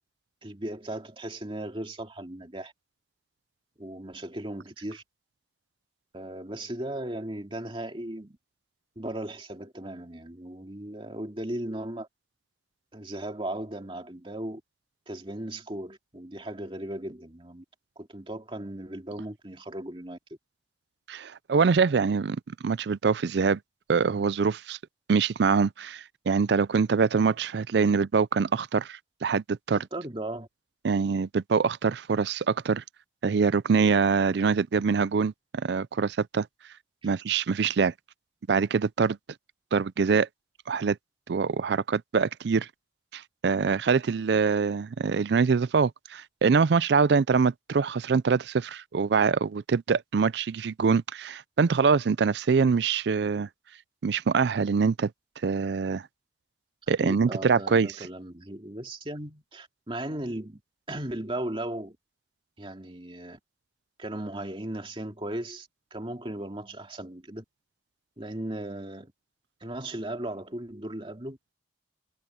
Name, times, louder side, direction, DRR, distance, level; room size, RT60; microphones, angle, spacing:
voice 1, 0.4-2.7 3.8-5.0 6.1-8.4 9.0-12.1 12.9-14.6 15.1-17.6 18.0-20.2 29.7-30.5 57.0-60.6 60.9-62.0 62.6-63.4 64.0-67.4 68.2-69.1 69.6-71.4, right 1 dB, 25° right, 2.3 m, -37 dB
voice 2, 21.1-23.6 23.9-24.8 25.1-29.8 30.8-32.8 33.2-36.5 37.0-37.9 38.5-39.2 39.7-40.3 40.7-41.0 41.3-42.7 43.1-53.5 54.0-55.1 55.4-56.0 56.9-57.9, right 5 dB, 60° right, 0.4 m, -24 dB
head